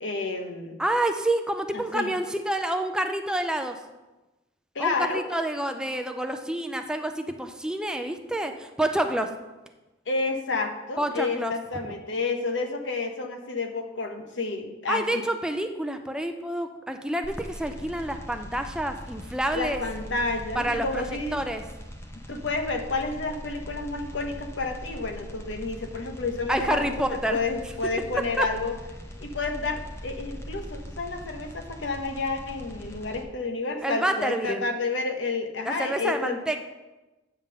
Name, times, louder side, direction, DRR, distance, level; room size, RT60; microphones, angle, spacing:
voice 1, 0.0-0.8 1.7-2.1 4.7-5.2 10.1-15.2 19.5-21.4 22.3-28.7 29.2-36.4, left 3 dB, 85° left, 4 dB, 0.9 m, -30 dB
voice 2, 0.8-3.8 4.8-9.3 11.0-11.5 14.9-19.8 20.5-21.0 21.3-21.7 26.5-27.4 28.4-28.5 33.8-34.6 35.7-36.6, right 1 dB, 5° right, 6 dB, 0.4 m, -28 dB
sound 1, 17.2-33.2, equal, 15° left, 0.8 m, -41 dB
8.8 x 3.6 x 6.5 m, 1.1 s
head